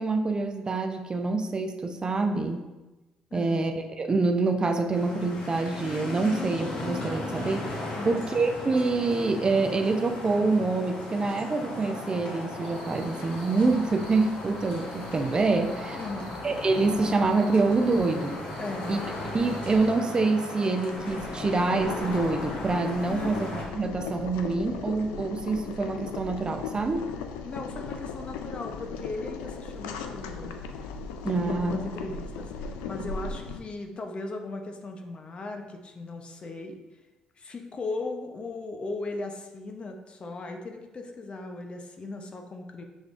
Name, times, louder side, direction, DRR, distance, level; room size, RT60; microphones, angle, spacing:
voice 1, 0.0-2.7 3.3-16.0 16.4-18.4 18.9-19.0 19.3-27.1 31.2-31.8, right 3 dB, 35° right, 6 dB, 0.5 m, -26 dB
voice 2, 3.3-3.7 7.9-8.1 16.0-16.3 18.6-19.0 23.1-23.5 27.4-30.5 31.4-36.8 37.4-42.8, left 2 dB, 45° left, 3 dB, 0.7 m, -37 dB
sound 1, 4.9-23.6, left 2 dB, 65° left, 1.3 m, -36 dB
sound 2, 12.6-19.9, right 2 dB, 90° right, 0.8 m, -47 dB
Boiling, 20.8-33.6, left 5 dB, 90° left, 0.3 m, -38 dB
6.2 x 3.3 x 2.5 m, 1.1 s
supercardioid pair, 60°, 3 cm